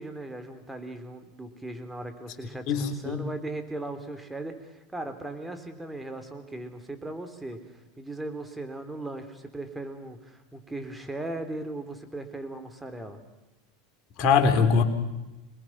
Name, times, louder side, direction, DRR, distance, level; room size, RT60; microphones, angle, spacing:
voice 1, 0.0-13.2, right 2 dB, 5° right, 7 dB, 3.3 m, -38 dB
voice 2, 2.7-3.2 14.2-14.8, left 5 dB, 50° left, 4 dB, 3.3 m, -22 dB
27.0 x 20.5 x 6.1 m, 1.0 s
hypercardioid pair, 100°, 0 cm